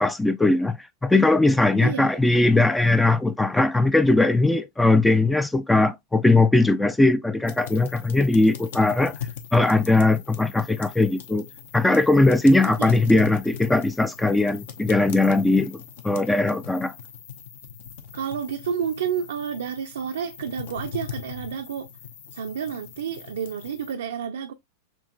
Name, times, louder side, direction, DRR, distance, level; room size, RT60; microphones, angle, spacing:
voice 1, 0.0-9.1 9.5-11.5 11.7-15.8 16.0-16.9, left 2 dB, 5° left, 0.3 m, -20 dB
voice 2, 1.8-2.2 12.7-12.9 18.1-21.9 22.3-24.5, right 8 dB, 65° right, 0.4 m, -30 dB
sound 1, 7.5-23.9, left 8 dB, 55° left, 0.7 m, -41 dB
6.0 x 3.1 x 2.2 m
figure-of-eight pair, 90°, 0 cm